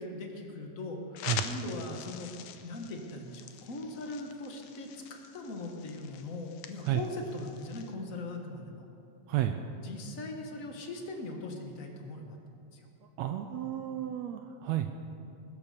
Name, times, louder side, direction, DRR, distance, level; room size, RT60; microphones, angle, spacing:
voice 1, 0.0-2.3 2.6-8.9 9.8-12.4 12.7-12.9, left 2 dB, 55° left, 2 dB, 0.8 m, -40 dB
sound 1, 1.1-7.9, left 9 dB, 75° left, 1.9 m, -44 dB
voice 2, 13.2-14.9, right 12 dB, 80° right, 6 dB, 1.7 m, -31 dB
21.0 x 7.3 x 6.6 m, 2.7 s
omnidirectional pair, 3.4 m